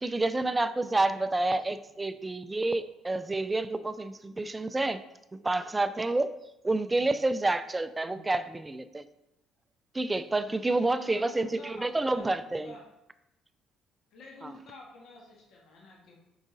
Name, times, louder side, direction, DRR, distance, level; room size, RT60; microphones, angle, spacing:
voice 1, 0.0-5.0 5.3-6.3 6.6-9.0 9.9-12.7 14.4-14.5, right 2 dB, 15° right, 12 dB, 0.3 m, -29 dB
voice 2, 0.9-2.0 6.8-7.1 8.0-8.2 10.3-12.9 14.1-16.1, left 3 dB, 70° left, -2 dB, 1.5 m, -50 dB
6.2 x 4.9 x 3.9 m, 0.91 s
cardioid pair, 130°, 0 cm